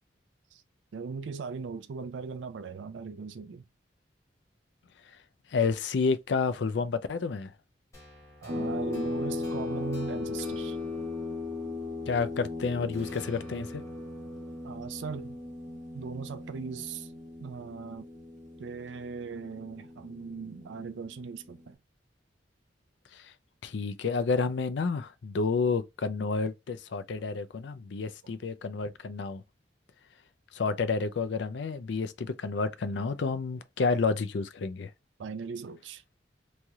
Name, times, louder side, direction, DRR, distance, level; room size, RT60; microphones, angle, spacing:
voice 1, 0.9-3.6 8.4-10.8 14.6-15.4 15.9-17.1 17.4-18.1 18.6-21.8 35.2-36.2, right 5 dB, 80° right, 0.4 m, -39 dB
voice 2, 5.5-7.5 12.1-13.8 23.1-23.3 23.6-29.4 30.5-34.9, left 4 dB, 70° left, 0.4 m, -30 dB
sound 1, 7.9-12.5 12.9-16.0, left 1 dB, 15° left, 1.3 m, -52 dB
sound 2, 8.5-21.6, left 2 dB, 45° right, 0.9 m, -37 dB
3.2 x 2.8 x 2.3 m
head